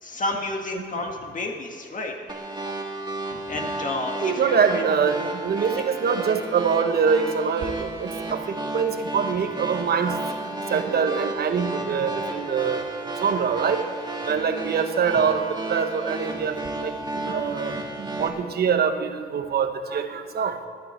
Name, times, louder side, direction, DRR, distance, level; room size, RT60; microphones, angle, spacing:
voice 1, 0.0-2.1 3.5-5.0 14.6-14.7 17.7-17.8, left 2 dB, 40° left, 2 dB, 1.9 m, -30 dB
sound 1, 2.3-18.3, right 2 dB, 20° right, 1.8 m, -33 dB
voice 2, 4.2-8.4 8.7-10.2 10.7-12.8 13.2-13.8 14.3-16.5 16.8-20.6, right 6 dB, 55° right, 8 dB, 1.2 m, -24 dB
19.5 x 11.0 x 4.5 m, 2.2 s
cardioid pair, 90°, 20 cm